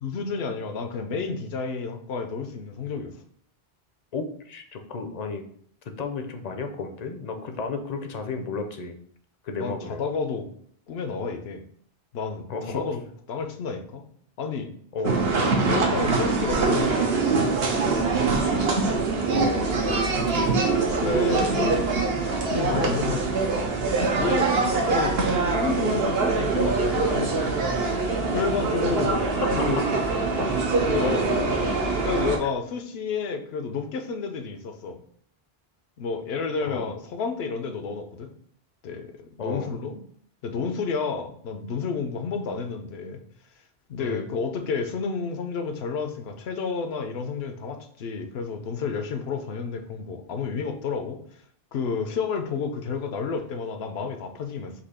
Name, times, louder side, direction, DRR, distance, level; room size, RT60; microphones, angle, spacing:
voice 1, 0.0-3.1 9.6-10.5 10.9-11.6 12.1-14.0 14.4-14.7 15.7-17.6 21.0-21.9 22.5-23.4 24.2-24.5 24.9-27.6 28.3-29.9 30.4-31.1 32.0-35.0 36.0-38.3 38.8-39.1 39.4-40.0 40.4-43.2 43.9-51.2 51.7-54.7, left 5 dB, 80° left, 6 dB, 0.9 m, -30 dB
voice 2, 4.1-5.4 6.0-8.9 9.4-10.0 12.5-12.9 14.9-15.3 18.9-19.0 19.3-20.5 29.4-29.5 31.0-31.3 32.4-32.5 36.7-36.9 39.4-39.7 44.0-44.3, left 4 dB, 50° left, 6 dB, 0.5 m, -32 dB
sound 1, 15.0-32.4, right 3 dB, 75° right, 1.0 m, -24 dB
4.3 x 2.7 x 4.1 m, 0.62 s
omnidirectional pair, 1.0 m